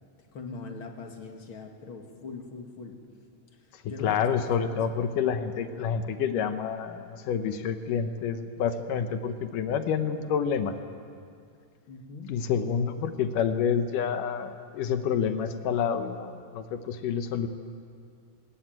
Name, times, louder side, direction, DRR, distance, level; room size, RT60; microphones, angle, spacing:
voice 1, 0.3-3.0 3.5-4.8 11.9-12.3, left 3 dB, 45° left, 3 dB, 2.3 m, -42 dB
voice 2, 4.0-10.8 12.3-17.5, left 7 dB, 75° left, 9 dB, 2.5 m, -28 dB
21.5 x 20.0 x 9.2 m, 2.3 s
omnidirectional pair, 3.9 m